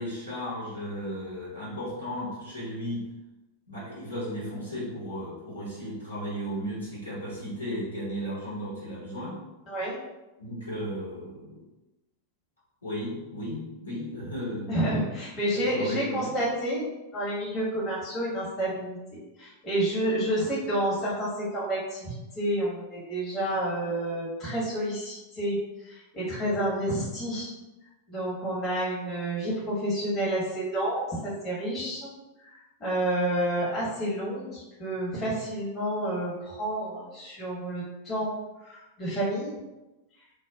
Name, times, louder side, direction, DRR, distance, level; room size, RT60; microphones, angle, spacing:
voice 1, 0.0-3.0 3.7-9.4 10.4-11.6 12.8-14.7 15.5-16.3, equal, 75° left, -8 dB, 1.2 m, -35 dB
voice 2, 9.7-10.0 14.7-16.9 17.1-27.5 28.1-32.1 32.4-38.3 38.6-39.5, right 1 dB, 30° left, -6 dB, 1.0 m, -29 dB
2.2 x 2.1 x 3.5 m, 1.0 s
figure-of-eight pair, 90°, 0 cm